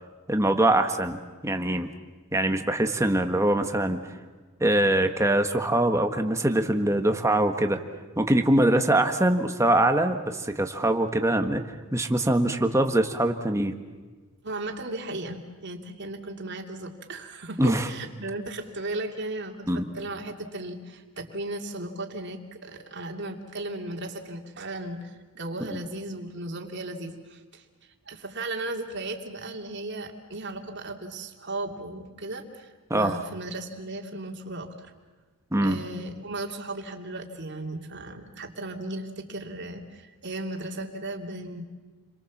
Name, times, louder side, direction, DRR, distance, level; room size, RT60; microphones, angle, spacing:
voice 1, 0.3-1.9 2.3-4.0 4.6-7.8 8.2-11.6 11.9-13.7 17.6-17.9 19.7-19.9 25.7-25.8 32.9-33.2 35.5-35.8, right 1 dB, 15° right, 6 dB, 1.5 m, -23 dB
voice 2, 14.4-27.6 28.1-34.9 35.6-41.6, right 2 dB, 50° right, 3 dB, 2.7 m, -36 dB
30.0 x 23.5 x 7.3 m, 1.4 s
head